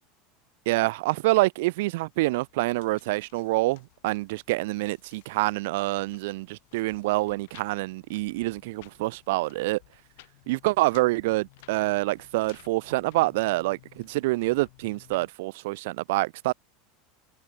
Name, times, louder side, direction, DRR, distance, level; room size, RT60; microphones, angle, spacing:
voice 1, 0.7-9.8 10.5-16.5, right 21 dB, 65° right, 0.4 m, -26 dB
sound 1, 2.0-15.3, left 22 dB, 65° left, 7.6 m, -57 dB
supercardioid pair, 170°, 0 cm